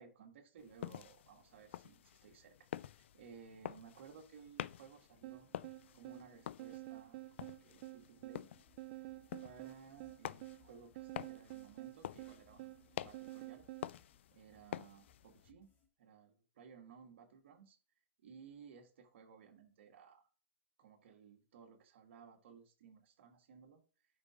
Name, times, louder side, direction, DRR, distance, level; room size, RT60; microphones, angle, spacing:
voice 1, 0.0-2.7 2.9-5.5 5.9-8.5 9.4-12.7 13.0-13.7 14.3-15.7 16.0-17.8 18.2-20.3 20.8-23.8, right 6 dB, 65° right, 1.6 m, -58 dB
sound 1, 0.6-15.5, left 11 dB, 65° left, 0.3 m, -49 dB
sound 2, 5.2-13.9, right 18 dB, 50° right, 0.3 m, -50 dB
sound 3, 8.6-15.9, left 6 dB, 25° left, 1.9 m, -73 dB
5.5 x 5.2 x 4.8 m
hypercardioid pair, 115°, 7 cm